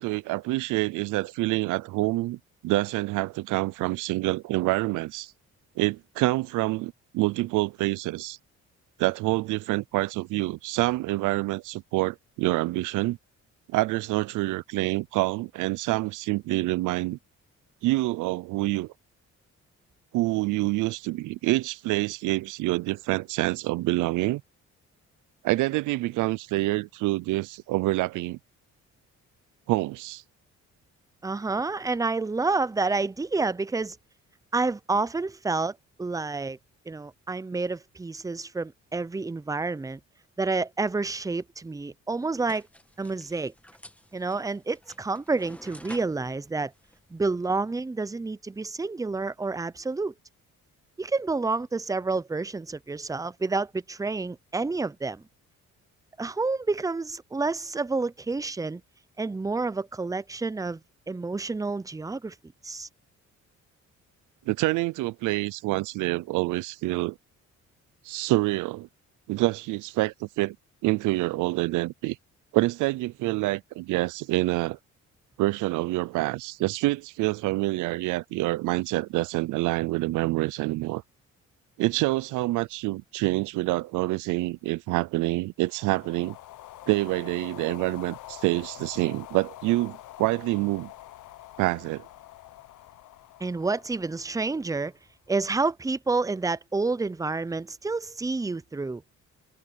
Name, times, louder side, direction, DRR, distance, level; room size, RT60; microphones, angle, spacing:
voice 1, 0.0-5.3 5.8-8.4 9.0-13.2 13.7-17.2 17.8-18.9 20.1-24.4 25.4-28.4 29.7-30.2 64.5-67.2 68.0-68.9 69.3-70.6 70.8-72.2 72.5-74.8 75.4-81.0 81.8-86.4 86.9-90.9 91.6-92.1, right 19 dB, 90° right, 0.5 m, -27 dB
voice 2, 31.2-34.0 34.5-36.6 36.9-40.0 40.4-42.7 43.0-43.5 44.1-46.7 47.1-50.1 51.0-55.2 56.2-58.8 59.2-60.8 61.1-62.4 62.6-62.9 93.4-94.9 95.3-99.0, right 3 dB, 10° right, 0.6 m, -29 dB
sound 1, 42.4-47.6, left 1 dB, 5° left, 1.9 m, -51 dB
sound 2, 85.6-95.1, left 14 dB, 80° left, 1.1 m, -46 dB
cardioid pair, 90°, 30 cm